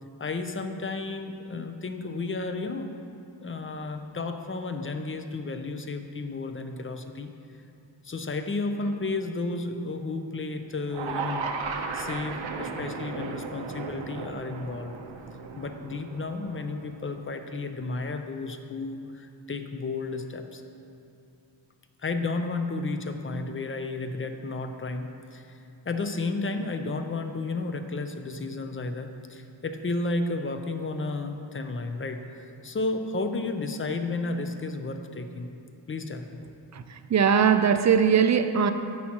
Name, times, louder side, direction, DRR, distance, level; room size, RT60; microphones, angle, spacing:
voice 1, 0.0-2.9 3.4-7.3 8.0-11.5 11.9-14.9 15.6-20.6 22.0-35.5 35.9-36.4, left 3 dB, 30° left, 7 dB, 0.5 m, -32 dB
sound 1, 10.9-17.1, right 5 dB, 75° right, 0.8 m, -35 dB
voice 2, 36.7-38.7, right 7 dB, 40° right, 9 dB, 0.4 m, -21 dB
10.5 x 8.6 x 2.9 m, 2.6 s
wide cardioid pair, 135°, 45 cm